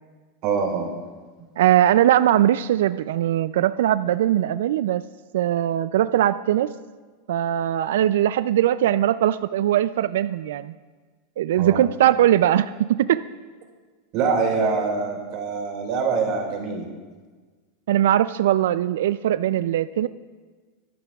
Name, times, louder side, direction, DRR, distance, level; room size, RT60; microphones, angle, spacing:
voice 1, 0.4-0.9 11.6-11.8 14.1-16.8, right 5 dB, 50° right, 1 dB, 3.5 m, -24 dB
voice 2, 1.6-5.0 5.3-6.7 7.3-10.7 11.4-13.2 17.9-20.1, right 12 dB, 80° right, 14 dB, 0.3 m, -20 dB
23.5 x 11.0 x 2.4 m, 1.4 s
supercardioid pair, 135°, 0 cm